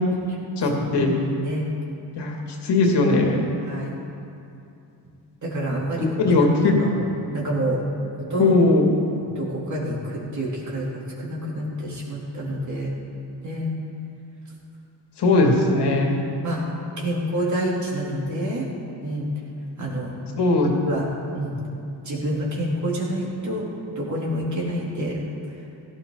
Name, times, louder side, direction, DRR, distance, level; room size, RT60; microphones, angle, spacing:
voice 1, 0.6-1.1 2.2-2.3 2.6-3.4 6.0-6.7 8.4-8.9 15.2-16.1 20.4-20.7, left 2 dB, 65° left, 0 dB, 2.6 m, -19 dB
voice 2, 3.6-3.9 5.4-7.0 7.3-7.8 8.3-8.6 9.4-12.9 13.4-13.7 15.8-15.9 16.4-16.6 17.0-18.7 19.0-19.3 19.8-20.1 20.8-21.1 21.3-21.5 22.1-23.7 24.0-25.2, right 1 dB, 40° right, -4 dB, 3.4 m, -27 dB
17.0 x 13.0 x 4.0 m, 2.7 s
cardioid pair, 110°, 43 cm